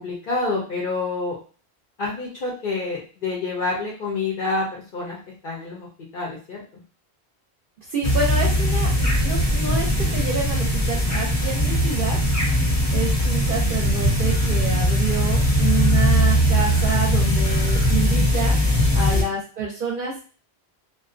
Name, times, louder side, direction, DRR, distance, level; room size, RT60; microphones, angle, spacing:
voice 1, 0.0-1.4 2.0-5.2 5.4-6.8 18.9-19.4, left 3 dB, 60° left, -2 dB, 0.7 m, -28 dB
voice 2, 7.9-12.2 12.9-18.5 18.9-20.2, right 4 dB, 60° right, -3 dB, 0.7 m, -28 dB
sound 1, 8.0-19.2, equal, 20° left, 0.7 m, -20 dB
2.5 x 2.1 x 2.5 m, 0.38 s
omnidirectional pair, 1.1 m